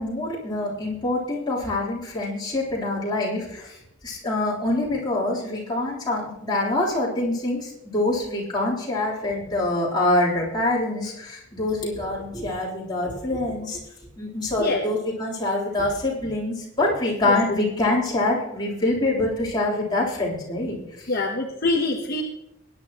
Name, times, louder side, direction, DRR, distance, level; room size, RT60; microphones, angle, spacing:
voice 1, 0.0-13.8 14.2-21.1, left 2 dB, 20° left, -6 dB, 3.6 m, -25 dB
voice 2, 21.1-22.2, left 2 dB, 50° left, 1 dB, 1.1 m, -25 dB
19.5 x 10.0 x 3.0 m, 0.85 s
head